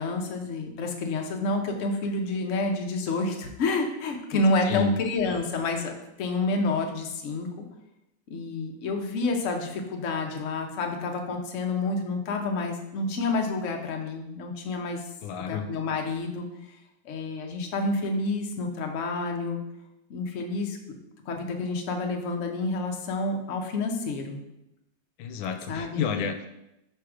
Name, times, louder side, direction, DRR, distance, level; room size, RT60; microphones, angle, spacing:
voice 1, 0.0-7.7 8.3-15.0 15.4-16.5 17.0-19.6 20.1-20.8 21.3-24.4 25.7-26.0, left 3 dB, 60° left, 2 dB, 0.8 m, -29 dB
voice 2, 4.6-5.0 15.2-15.7 25.2-26.5, left 6 dB, 90° left, 7 dB, 1.4 m, -30 dB
5.8 x 3.4 x 4.9 m, 0.86 s
omnidirectional pair, 2.2 m